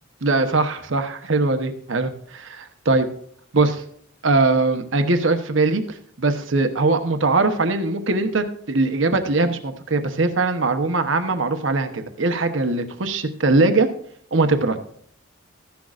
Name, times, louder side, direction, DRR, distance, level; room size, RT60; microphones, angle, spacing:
voice 1, 0.2-3.1 3.5-3.8 4.2-13.9 14.3-14.8, right 3 dB, 65° right, 7 dB, 1.0 m, -21 dB
14.0 x 10.5 x 2.5 m, 0.64 s
head